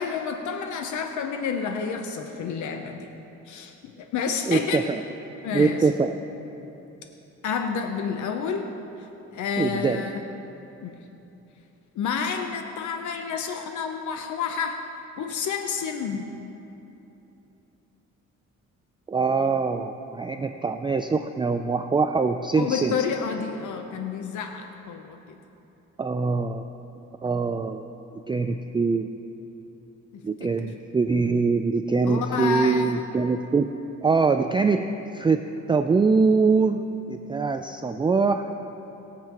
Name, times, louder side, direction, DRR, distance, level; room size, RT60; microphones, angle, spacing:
voice 1, 0.0-3.1 3.5-4.9 5.4-5.8 7.4-8.7 9.3-10.2 10.8-10.9 12.0-14.8 15.2-16.3 22.6-25.2 30.1-30.7 32.0-32.8, left 6 dB, 75° left, 5 dB, 0.8 m, -29 dB
voice 2, 4.5-5.0 5.5-6.1 9.6-10.0 19.1-22.9 26.0-26.6 27.2-27.9 28.3-29.1 30.2-33.7 34.0-38.5, right 4 dB, 15° right, 7 dB, 0.4 m, -23 dB
21.0 x 7.6 x 3.0 m, 3.0 s
cardioid pair, 90°, 30 cm